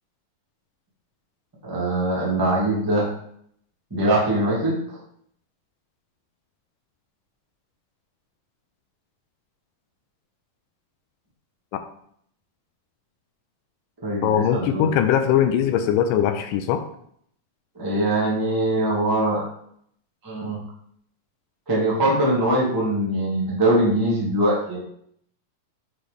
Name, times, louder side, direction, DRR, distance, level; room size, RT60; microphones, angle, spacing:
voice 1, 1.6-3.1 3.9-4.8 14.0-14.9 17.8-19.4 20.2-20.6 21.7-24.8, right 1 dB, 15° right, -5 dB, 0.8 m, -22 dB
voice 2, 14.2-16.8, left 9 dB, 80° left, 8 dB, 2.1 m, -21 dB
8.1 x 3.8 x 3.5 m, 0.67 s
omnidirectional pair, 3.9 m